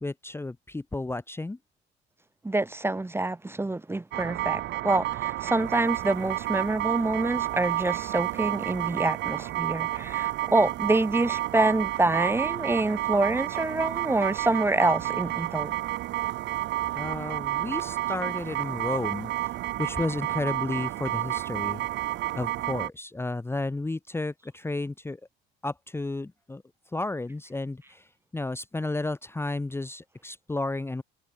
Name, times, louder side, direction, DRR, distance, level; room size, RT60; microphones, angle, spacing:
voice 1, 0.0-1.6 16.9-19.3 19.8-21.9 22.3-25.2 25.6-26.6 26.9-28.1 28.3-31.0, left 2 dB, 10° left, 1.0 m, -32 dB
voice 2, 2.4-15.8, right 2 dB, 10° right, 1.2 m, -26 dB
sound 1, 4.1-22.9, right 15 dB, 65° right, 0.8 m, -30 dB
cardioid pair, 95°, 20 cm